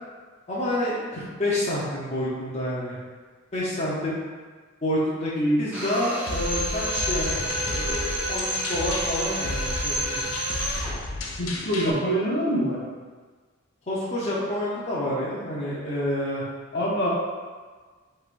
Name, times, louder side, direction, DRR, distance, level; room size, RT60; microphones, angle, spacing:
voice 1, 0.5-3.0 3.5-4.2 4.8-5.3 5.6-10.2 13.9-16.4, left 1 dB, 35° left, -8 dB, 0.8 m, -28 dB
Drill, 5.7-11.0, equal, 10° right, 1.1 m, -29 dB
sound 1, 6.3-11.9, left 2 dB, 90° left, 0.5 m, -33 dB
voice 2, 11.4-12.8 16.7-17.1, equal, 60° left, -5 dB, 0.9 m, -24 dB
5.6 x 3.2 x 2.5 m, 1.5 s
head